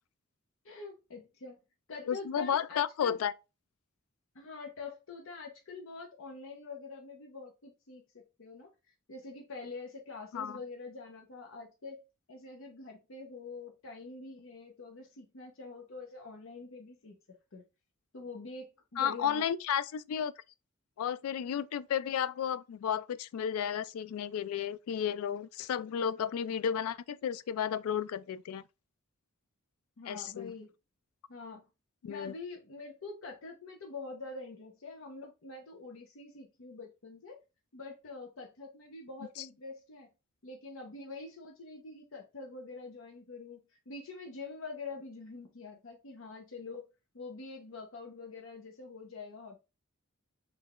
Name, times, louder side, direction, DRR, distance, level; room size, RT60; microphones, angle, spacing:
voice 1, 0.6-1.6 1.9-3.2 4.3-8.7 9.1-12.0 12.3-17.2 17.5-17.6 18.1-19.4 30.0-30.7 31.3-31.6 32.1-37.4 37.7-40.1 40.4-46.9 47.1-49.6, left 3 dB, 65° left, 0.7 m, -45 dB
voice 2, 2.1-3.3 10.3-10.6 19.0-20.3 21.0-28.6 30.1-30.5 32.0-32.3 39.4-39.5, left 8 dB, 90° left, 0.3 m, -33 dB
3.4 x 2.3 x 3.5 m
head